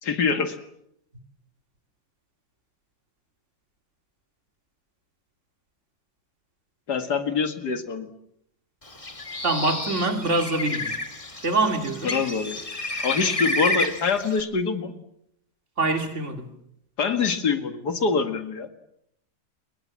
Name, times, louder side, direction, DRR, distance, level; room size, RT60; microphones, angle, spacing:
voice 1, 0.0-0.6 6.9-8.1 12.0-12.6 13.0-14.9 17.0-18.7, left 5 dB, 85° left, 8 dB, 2.4 m, -25 dB
Bird, 8.9-14.4, left 2 dB, 20° left, 2.1 m, -30 dB
voice 2, 9.4-11.0 11.4-12.2 15.8-16.5, right 2 dB, 45° right, 6 dB, 3.1 m, -25 dB
28.5 x 23.0 x 7.6 m, 0.76 s
omnidirectional pair, 1.7 m